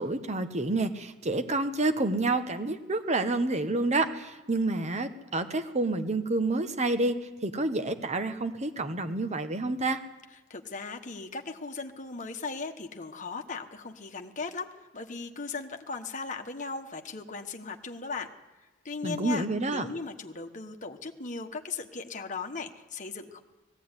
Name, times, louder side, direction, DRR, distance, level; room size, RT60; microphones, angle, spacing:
voice 1, 0.0-7.1 7.4-10.0 19.0-19.9, right 2 dB, 35° right, 9 dB, 1.2 m, -28 dB
voice 2, 10.5-18.3 18.8-23.4, left 4 dB, 40° left, 4 dB, 1.2 m, -38 dB
18.5 x 15.5 x 9.7 m, 1.1 s
head